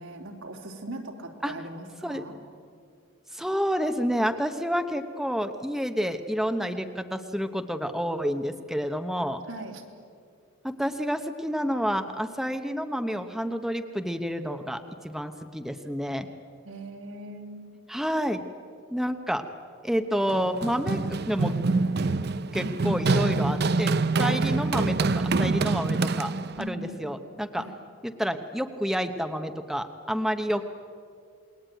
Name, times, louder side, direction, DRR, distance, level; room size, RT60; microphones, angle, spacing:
voice 1, 0.0-2.4 9.5-9.8 16.6-17.8 24.2-24.4 26.6-27.2 27.6-27.8, right 1 dB, 80° right, 2 dB, 3.5 m, -40 dB
voice 2, 3.3-9.4 10.6-16.3 17.9-18.4 18.9-19.4 19.8-21.5 22.5-26.3 26.6-27.6 28.0-30.7, equal, ahead, 7 dB, 0.9 m, -29 dB
Run, 20.3-26.7, right 3 dB, 50° right, 0.6 m, -25 dB
28.0 x 21.0 x 9.1 m, 2.3 s
head